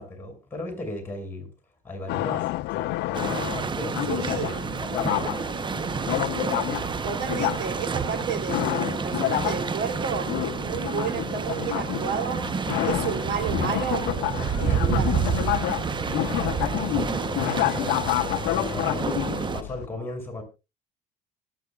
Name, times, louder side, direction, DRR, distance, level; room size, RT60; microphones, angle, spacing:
voice 1, 0.0-1.5 1.8-5.4 14.7-15.1 15.9-20.4, left 2 dB, 15° left, 6.3 m, -37 dB
sound 1, 2.1-19.9, left 18 dB, 85° left, 0.5 m, -29 dB
sound 2, 3.1-19.6, right 6 dB, 30° right, 0.7 m, -29 dB
voice 2, 4.1-4.6 7.0-12.4 12.8-14.0 14.5-15.2, right 6 dB, 80° right, 2.8 m, -31 dB
24.5 x 9.1 x 2.3 m
cardioid pair, 110°, 17 cm